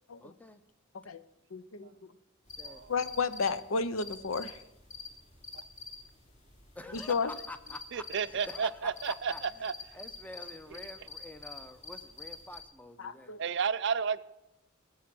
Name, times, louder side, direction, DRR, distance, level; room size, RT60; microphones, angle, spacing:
voice 1, 0.2-0.6 2.6-2.8 6.7-13.4, left 1 dB, 10° left, 10 dB, 0.7 m, -47 dB
voice 2, 1.5-1.9 2.9-4.6 6.9-7.3 13.0-13.4, left 4 dB, 85° left, 14 dB, 0.7 m, -32 dB
sound 1, 2.5-12.6, left 4 dB, 35° left, 2.8 m, -47 dB
voice 3, 2.6-2.9 5.5-5.6 7.9-9.7 13.4-14.2, right 6 dB, 60° right, 15 dB, 0.5 m, -32 dB
18.5 x 7.2 x 6.1 m, 0.92 s
head